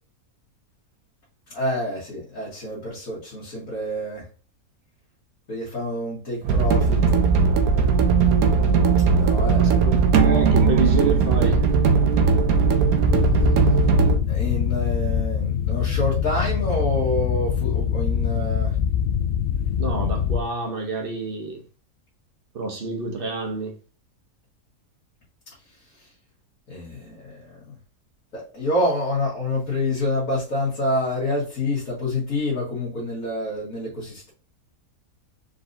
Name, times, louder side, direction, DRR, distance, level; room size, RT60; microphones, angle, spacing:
voice 1, 1.5-4.3 5.5-7.2 9.2-10.0 14.3-18.8 26.7-27.6 28.3-34.3, left 1 dB, 55° left, 2.0 m, -27 dB
sound 1, 6.4-14.2, right 5 dB, 70° right, 1.0 m, -18 dB
voice 2, 9.6-11.6 19.8-21.6 22.5-23.7, right 4 dB, 40° right, 0.9 m, -27 dB
sound 2, 13.0-20.4, left 8 dB, 85° left, 0.6 m, -24 dB
4.5 x 3.9 x 2.7 m
omnidirectional pair, 1.7 m